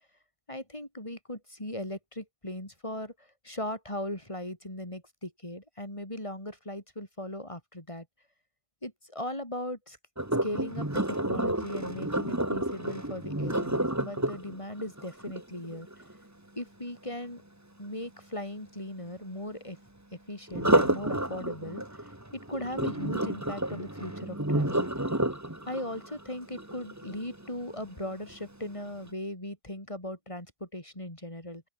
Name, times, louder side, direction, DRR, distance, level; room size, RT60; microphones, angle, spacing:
voice 1, 0.5-8.1 8.8-10.0 10.4-15.9 16.6-17.4 17.8-19.8 20.1-24.9 25.7-31.6, left 1 dB, 30° left, 5.4 m, -38 dB
Sink (filling or washing), 10.2-16.1 20.5-27.5 28.1-28.4 28.9-29.0, right 1 dB, 15° right, 2.3 m, -30 dB
open air
omnidirectional pair, 1.1 m